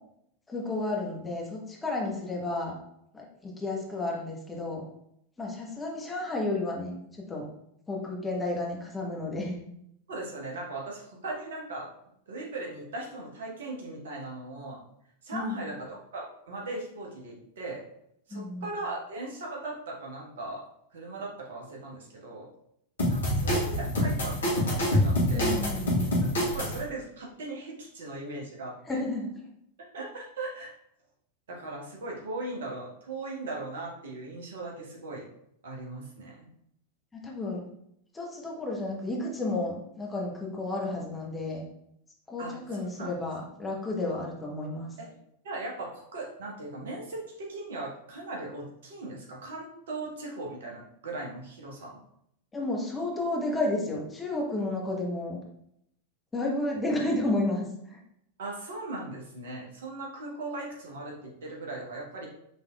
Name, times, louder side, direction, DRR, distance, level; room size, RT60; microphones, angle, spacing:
voice 1, 0.5-2.7 3.1-4.8 5.4-7.0 7.3-7.5 7.9-9.6 15.3-15.7 18.3-18.7 25.3-26.1 28.9-29.4 37.1-37.6 38.1-41.6 42.3-44.9 52.5-55.4 56.3-57.6 57.9-58.0, left 2 dB, 15° left, -2 dB, 1.0 m, -32 dB
voice 2, 10.1-11.9 12.3-14.8 15.2-17.8 18.3-20.6 20.9-22.5 23.1-24.5 24.9-25.6 26.4-29.0 29.9-30.7 31.5-35.2 35.6-36.5 42.4-43.2 45.0-45.2 45.4-52.0 58.4-62.3, right 2 dB, 60° right, -2 dB, 1.1 m, -38 dB
sound 1, 23.0-26.8, equal, 65° left, 1.2 m, -26 dB
5.4 x 3.4 x 2.3 m, 0.74 s
figure-of-eight pair, 90°, 0 cm